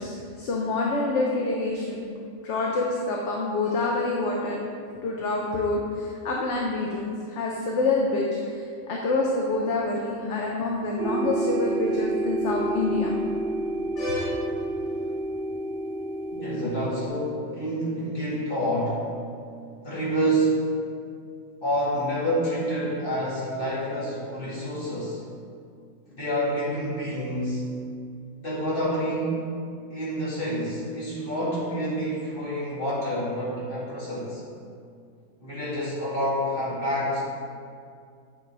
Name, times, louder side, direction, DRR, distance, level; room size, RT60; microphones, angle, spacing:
voice 1, 0.0-2.0 2.4-4.6 5.0-13.1 14.0-14.4, left 3 dB, 60° left, -2 dB, 1.0 m, -27 dB
sound 1, 11.0-17.1, right 2 dB, 50° right, 0.8 m, -29 dB
voice 2, 16.3-19.1 19.8-20.7 21.6-25.2 26.2-27.7 28.4-29.5 29.9-34.4 35.4-37.2, equal, 40° left, -8 dB, 2.2 m, -28 dB
8.9 x 6.0 x 3.3 m, 2.3 s
omnidirectional pair, 1.5 m